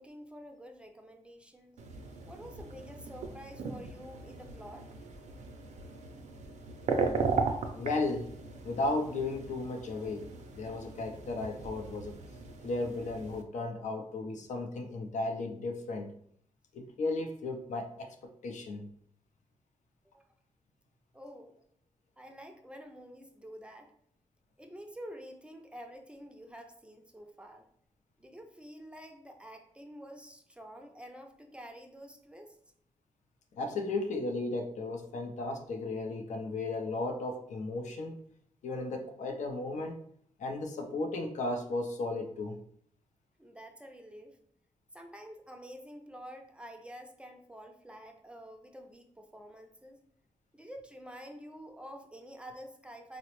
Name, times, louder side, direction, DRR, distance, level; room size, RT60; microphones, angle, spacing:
voice 1, 0.0-1.8 2.2-4.9 20.1-20.2 21.1-21.6 22.2-23.9 24.6-27.6 28.2-32.6 43.4-44.4 44.9-50.0 50.5-53.2, equal, 10° right, 4 dB, 0.3 m, -48 dB
sound 1, 1.8-13.4, right 4 dB, 75° right, 0.4 m, -37 dB
voice 2, 7.7-8.3 8.6-10.3 10.5-12.1 12.6-16.1 16.7-18.9 33.6-38.2 38.6-39.9 40.4-42.6, left 2 dB, 85° left, 5 dB, 0.5 m, -35 dB
3.9 x 2.0 x 2.9 m, 0.65 s
wide cardioid pair, 130°, 12 cm